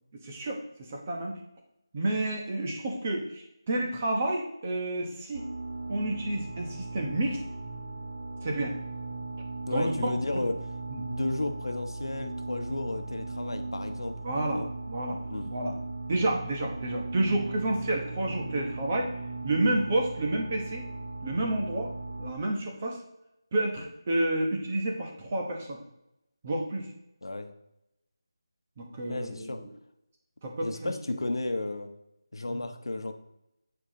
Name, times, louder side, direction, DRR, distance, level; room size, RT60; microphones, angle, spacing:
voice 1, 0.2-1.4 1.9-5.4 5.9-7.4 8.4-8.7 9.7-10.5 10.9-11.1 14.2-15.2 15.4-15.8 16.1-19.1 19.4-20.8 21.2-21.9 22.2-23.0 23.5-25.8 26.4-26.9 28.8-29.5 30.4-30.9 32.5-32.6, right 1 dB, 20° right, 0 dB, 1.0 m, -30 dB
sound 1, 5.3-22.3, right 3 dB, 45° right, 1.1 m, -38 dB
voice 2, 9.7-10.6 11.1-14.2 14.5-14.7 15.3-15.5 27.2-27.5 29.1-29.6 30.6-31.9 32.3-33.1, left 2 dB, 80° left, 7 dB, 0.9 m, -33 dB
8.3 x 4.6 x 3.8 m, 0.87 s
figure-of-eight pair, 175°, 2 cm